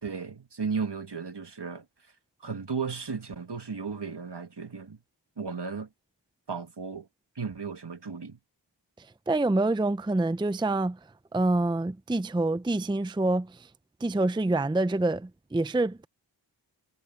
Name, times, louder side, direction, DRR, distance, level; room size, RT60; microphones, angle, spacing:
voice 1, 0.0-1.8 2.4-5.0 5.4-5.9 6.5-7.1 7.4-8.4, right 5 dB, 65° right, 1.7 m, -35 dB
voice 2, 9.0-11.0 11.3-13.7 14.0-16.1, right 2 dB, 10° right, 0.5 m, -26 dB
wide cardioid pair, 60°, 45 cm